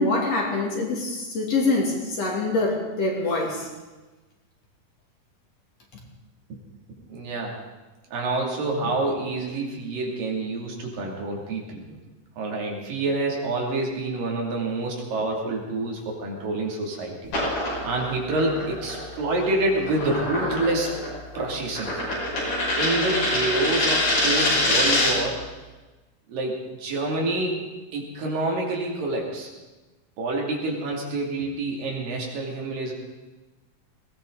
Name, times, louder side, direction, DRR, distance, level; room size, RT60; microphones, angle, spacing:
voice 1, 0.0-3.7, left 2 dB, 50° left, -1 dB, 3.6 m, -24 dB
voice 2, 7.0-7.6 8.1-12.0 12.4-17.3 17.8-21.0 21.3-21.9 22.8-25.4 26.3-27.6 27.9-29.5 30.2-32.9, right 2 dB, 80° right, -1 dB, 4.4 m, -27 dB
sound 1, 17.2-25.3, left 1 dB, 70° left, 7.1 m, -25 dB
20.0 x 18.0 x 3.9 m, 1.2 s
omnidirectional pair, 3.9 m